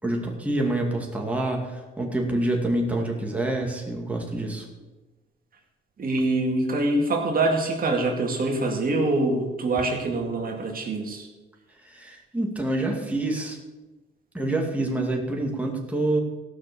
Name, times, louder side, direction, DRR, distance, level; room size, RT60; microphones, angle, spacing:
voice 1, 0.0-4.7 11.8-13.6 14.3-16.2, right 2 dB, 5° right, 0 dB, 2.3 m, -27 dB
voice 2, 6.0-11.3, right 2 dB, 45° right, 1 dB, 2.2 m, -24 dB
16.0 x 6.2 x 7.0 m, 1.2 s
cardioid pair, 90°, 20 cm